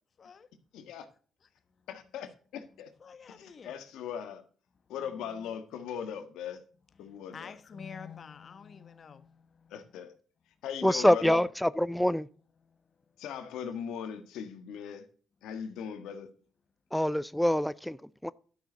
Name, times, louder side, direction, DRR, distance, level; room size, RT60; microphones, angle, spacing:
voice 1, 0.2-0.5 1.4-1.9 2.3-2.4 3.0-3.8 4.9-5.5 6.9-10.0 12.6-13.2, left 6 dB, 45° left, 1.0 m, -49 dB
voice 2, 0.7-1.1 1.9-2.9 3.4-4.4 4.9-6.6 7.0-7.5 9.7-10.1 10.6-11.4 13.2-15.1 15.4-16.3, left 8 dB, 90° left, 1.5 m, -39 dB
voice 3, 10.8-12.3 16.9-18.3, equal, 5° left, 0.4 m, -26 dB
11.5 x 6.5 x 3.9 m
cardioid pair, 90°, 0 cm